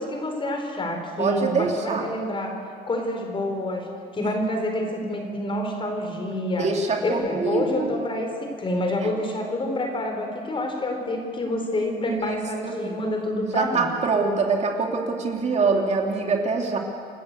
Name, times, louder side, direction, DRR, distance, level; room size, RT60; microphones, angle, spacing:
voice 1, 0.0-2.6 2.9-3.9 4.1-6.7 7.0-13.9, left 1 dB, 30° left, 3 dB, 4.3 m, -28 dB
voice 2, 1.2-2.1 6.6-7.9 12.1-12.4 12.6-12.9 13.5-16.8, right 4 dB, 40° right, 2 dB, 2.7 m, -24 dB
28.0 x 13.0 x 8.4 m, 2.4 s
cardioid pair, 110°, 17 cm